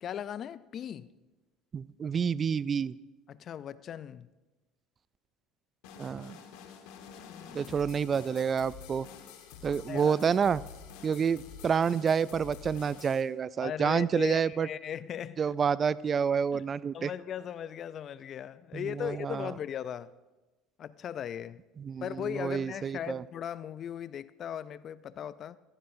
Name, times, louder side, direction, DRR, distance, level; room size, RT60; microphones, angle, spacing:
voice 1, 0.0-1.1 3.3-4.3 7.2-7.7 9.8-10.2 13.6-15.5 16.5-16.6 16.9-20.2 20.8-21.6 22.0-25.6, left 9 dB, 45° left, 0.4 m, -38 dB
voice 2, 1.7-2.9 6.0-6.4 7.5-9.1 9.6-10.6 11.0-14.7 15.4-17.1 18.7-19.5 21.8-23.2, right 6 dB, 35° right, 0.3 m, -29 dB
sound 1, 5.8-13.2, left 7 dB, 75° left, 1.4 m, -48 dB
15.0 x 15.0 x 2.7 m
hypercardioid pair, 80°, 0 cm